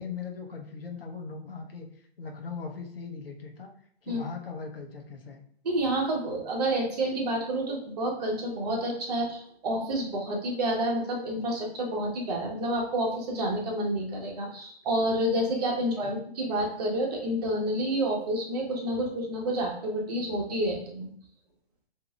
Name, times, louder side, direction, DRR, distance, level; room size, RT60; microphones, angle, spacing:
voice 1, 0.0-1.9 2.2-3.7 4.0-5.4 16.0-16.1, left 5 dB, 65° left, 2 dB, 0.9 m, -39 dB
voice 2, 5.6-21.1, right 1 dB, 40° right, 0 dB, 1.2 m, -29 dB
8.0 x 2.8 x 2.4 m, 0.63 s
figure-of-eight pair, 125°, 32 cm